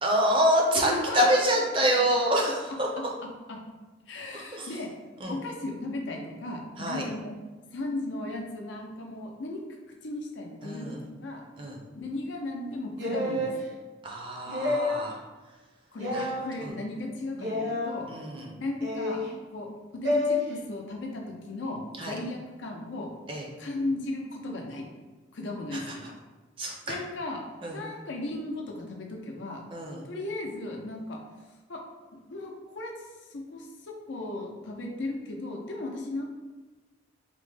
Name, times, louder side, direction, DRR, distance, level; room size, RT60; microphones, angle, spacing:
voice 1, 0.0-2.9 4.3-4.7 5.2-5.4 6.8-7.1 10.6-11.0 11.6-11.8 14.0-15.2 16.1-16.3 16.6-16.7 18.1-18.5 22.0-22.2 23.3-23.4 25.7-25.8 26.6-27.0 27.6-27.8 29.7-30.0, equal, 30° right, -1 dB, 0.4 m, -26 dB
voice 2, 0.7-1.4 3.5-3.6 4.1-4.9 5.3-7.3 7.7-9.6 10.0-11.4 12.0-13.5 15.9-18.1 18.6-19.2 19.5-19.7 19.9-23.1 23.6-24.8 25.3-26.0 26.9-27.4 27.7-29.6 30.1-31.2 31.7-31.8 32.3-32.9 33.3-36.3, left 2 dB, 85° left, 0 dB, 0.6 m, -35 dB
sound 1, 13.0-13.6 14.5-15.1 16.0-16.4 17.4-17.9 18.8-19.3 20.0-20.4, left 2 dB, 70° right, 0.9 m, -28 dB
3.4 x 2.1 x 3.3 m, 1.2 s
head